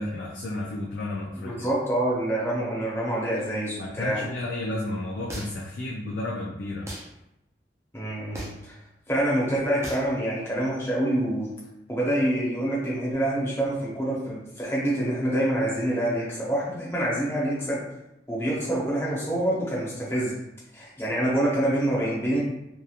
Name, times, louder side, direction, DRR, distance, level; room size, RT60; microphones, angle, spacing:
voice 1, 0.0-1.7 3.8-6.9, left 1 dB, 80° left, -4 dB, 0.4 m, -32 dB
voice 2, 1.4-4.3 7.9-8.8 9.1-11.5 11.9-17.8 18.3-20.3 20.7-22.4, right 1 dB, 15° left, -6 dB, 0.8 m, -26 dB
sound 1, 5.3-5.7 6.9-7.1 8.3-8.7 9.8-10.1, right 1 dB, 15° right, 0.4 m, -37 dB
2.9 x 2.4 x 2.4 m, 0.87 s
head